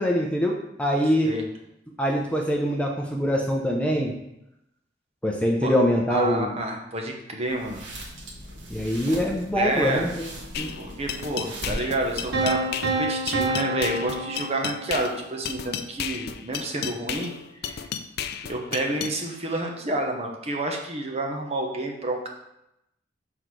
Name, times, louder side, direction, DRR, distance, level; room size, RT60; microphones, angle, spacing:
voice 1, 0.0-1.3 2.0-4.1 5.2-6.5 8.7-10.3 10.6-10.7, equal, 5° left, -1 dB, 0.6 m, -24 dB
voice 2, 6.1-7.9 9.5-10.1 10.8-17.3 17.6-17.9 18.5-22.3, right 2 dB, 35° right, 1 dB, 1.0 m, -29 dB
sound 1, 7.5-12.7, equal, 80° right, 1.5 m, -39 dB
sound 2, 10.5-19.1, left 8 dB, 60° left, 0.4 m, -33 dB
sound 3, 12.3-15.2, right 2 dB, 65° right, 1.1 m, -28 dB
6.3 x 3.9 x 4.7 m, 0.84 s
head